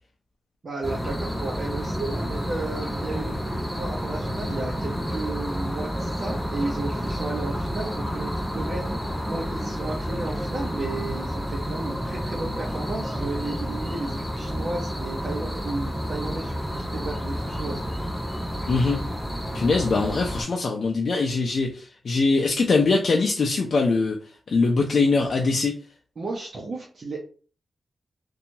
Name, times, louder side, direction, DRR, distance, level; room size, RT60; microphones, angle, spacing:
voice 1, 0.6-18.1 26.2-27.2, right 2 dB, 55° right, -2 dB, 0.6 m, -34 dB
sound 1, 0.8-20.4, equal, 5° right, 1.4 m, -30 dB
voice 2, 18.7-19.0 19.5-24.2 24.5-25.8, left 3 dB, 65° left, 0 dB, 0.4 m, -22 dB
2.8 x 2.3 x 2.6 m, 0.40 s
cardioid pair, 70°, 0 cm